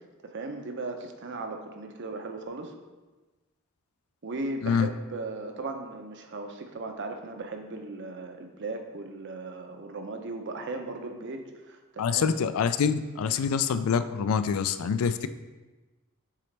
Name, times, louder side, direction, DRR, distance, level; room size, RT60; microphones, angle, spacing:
voice 1, 0.2-2.7 4.2-12.3, right 3 dB, 55° right, 5 dB, 0.6 m, -37 dB
voice 2, 12.0-15.3, left 6 dB, 80° left, 12 dB, 0.3 m, -26 dB
7.5 x 4.0 x 3.3 m, 1.2 s
head